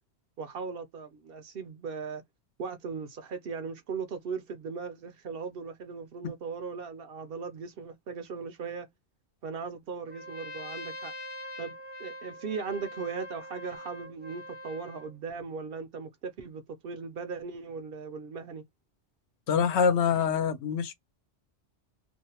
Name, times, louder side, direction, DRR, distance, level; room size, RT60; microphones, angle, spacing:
voice 1, 0.4-2.2 2.6-8.9 9.4-11.1 11.6-18.6, right 5 dB, 65° right, 0.7 m, -38 dB
Trumpet, 10.1-15.1, left 1 dB, 10° right, 0.5 m, -43 dB
voice 2, 19.5-20.9, left 6 dB, 75° left, 0.9 m, -25 dB
2.5 x 2.1 x 2.8 m
omnidirectional pair, 1.2 m